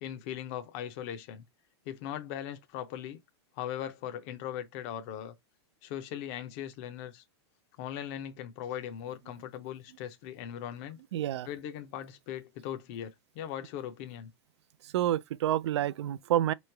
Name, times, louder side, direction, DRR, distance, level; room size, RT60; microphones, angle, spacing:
voice 1, 0.0-1.4 1.9-3.2 3.6-5.3 5.8-7.2 7.8-11.0 11.5-14.3, left 10 dB, 30° left, 0.5 m, -39 dB
voice 2, 11.1-11.5 14.8-16.5, right 12 dB, 85° right, 0.4 m, -28 dB
3.1 x 2.9 x 4.5 m
supercardioid pair, 175°, 14 cm